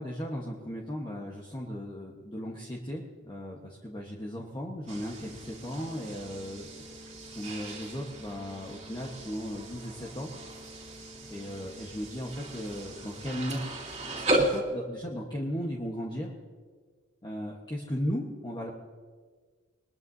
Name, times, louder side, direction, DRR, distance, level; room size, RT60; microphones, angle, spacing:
voice 1, 0.0-6.7 7.3-10.3 11.3-13.6 14.0-16.3 17.2-18.7, equal, 20° left, -2 dB, 1.3 m, -36 dB
sound 1, 4.9-14.6, right 1 dB, 30° right, 2.6 m, -36 dB
22.0 x 21.0 x 2.8 m, 1.6 s
head